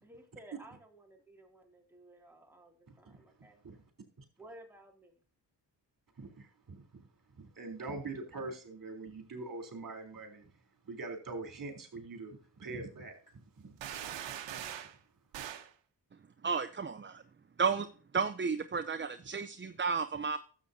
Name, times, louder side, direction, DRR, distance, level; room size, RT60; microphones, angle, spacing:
voice 1, 0.0-3.6 4.4-5.1, right 1 dB, 5° right, 2.6 m, -55 dB
voice 2, 2.9-3.9 4.2-4.3 6.2-7.1 7.3-13.8 14.2-14.7, right 3 dB, 50° right, 3.6 m, -44 dB
sound 1, 13.8-15.0 15.3-15.7, right 10 dB, 90° right, 1.0 m, -41 dB
voice 3, 16.4-17.2 17.6-17.9 18.1-20.4, right 5 dB, 25° right, 0.6 m, -32 dB
12.5 x 8.1 x 2.8 m
cardioid pair, 60°, 43 cm